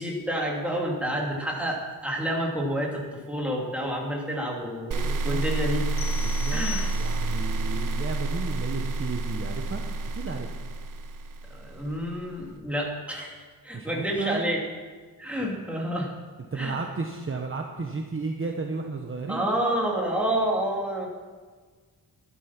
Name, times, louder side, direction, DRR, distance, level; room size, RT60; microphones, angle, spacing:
voice 1, 0.0-5.9 6.5-6.9 11.5-13.4 13.6-14.6 15.2-16.1 16.6-16.8 19.3-21.1, right 1 dB, 5° right, -2 dB, 2.8 m, -29 dB
sound 1, 4.9-12.0, right 2 dB, 55° right, 0.9 m, -29 dB
voice 2, 5.0-5.4 6.2-6.6 6.9-9.8 10.1-10.5 13.7-14.4 16.5-19.5, right 4 dB, 35° right, 2 dB, 1.0 m, -33 dB
sound 2, 6.0-7.5, left 8 dB, 65° left, 0.8 m, -39 dB
12.0 x 12.0 x 5.9 m, 1.5 s
wide cardioid pair, 130°, 37 cm